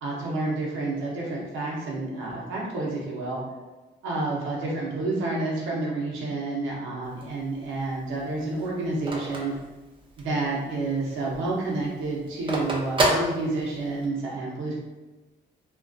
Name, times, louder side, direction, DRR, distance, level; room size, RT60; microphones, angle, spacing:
voice 1, 0.0-3.4 4.0-9.5 10.2-14.8, right 2 dB, 80° right, -4 dB, 0.6 m, -29 dB
Telephone, 7.0-10.4 10.8-10.9 11.2-14.1, right 1 dB, 25° right, 0.5 m, -29 dB
2.5 x 2.2 x 2.3 m, 1.1 s
cardioid pair, 90°, 20 cm